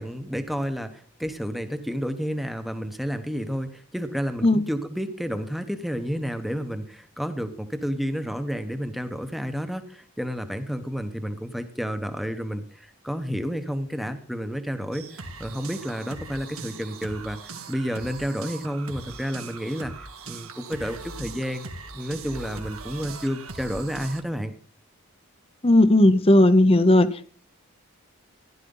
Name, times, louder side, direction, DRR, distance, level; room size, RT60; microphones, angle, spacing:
voice 1, 0.0-17.4 17.7-21.7 21.9-24.5, equal, ahead, 8 dB, 1.0 m, -31 dB
sound 1, 14.9-24.2, right 3 dB, 75° right, 1.8 m, -40 dB
voice 2, 25.6-27.2, left 1 dB, 25° left, 13 dB, 0.8 m, -16 dB
15.0 x 11.5 x 3.9 m, 0.43 s
head